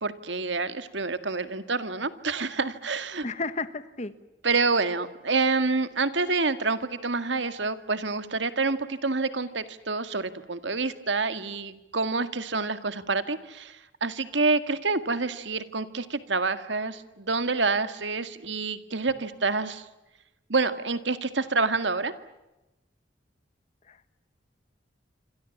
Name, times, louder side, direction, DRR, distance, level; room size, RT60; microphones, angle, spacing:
voice 1, 0.0-3.3 4.4-19.9 20.5-22.1, right 3 dB, 75° right, 11 dB, 2.0 m, -27 dB
voice 2, 3.2-4.1 23.9-24.1, left 3 dB, 35° left, 13 dB, 1.4 m, -33 dB
27.0 x 27.0 x 7.3 m, 0.98 s
head